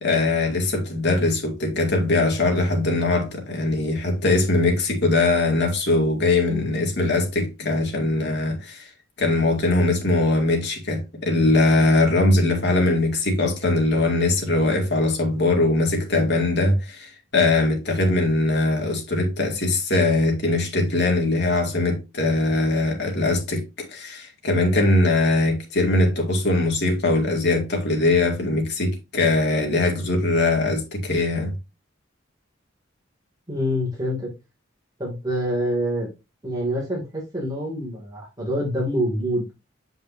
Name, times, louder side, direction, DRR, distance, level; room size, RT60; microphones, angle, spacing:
voice 1, 0.0-8.9 9.2-31.5, left 2 dB, 65° left, 2.3 m, -21 dB
voice 2, 33.5-34.3 35.0-36.1 36.4-39.5, equal, 20° right, 2.4 m, -26 dB
7.7 x 5.4 x 2.7 m
head